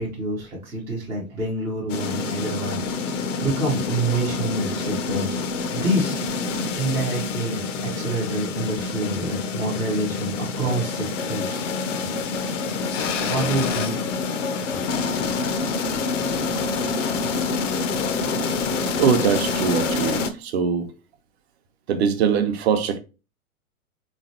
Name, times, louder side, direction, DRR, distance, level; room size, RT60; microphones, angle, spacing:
voice 1, 0.0-6.2 6.7-11.7 13.2-14.1 14.6-14.8, right 2 dB, 5° right, 0.4 m, -27 dB
sound 1, 1.9-20.3, left 4 dB, 60° left, 0.6 m, -27 dB
voice 2, 19.0-20.9 21.9-23.0, right 6 dB, 45° right, 0.7 m, -22 dB
3.5 x 3.1 x 2.7 m
figure-of-eight pair, 105°, 43 cm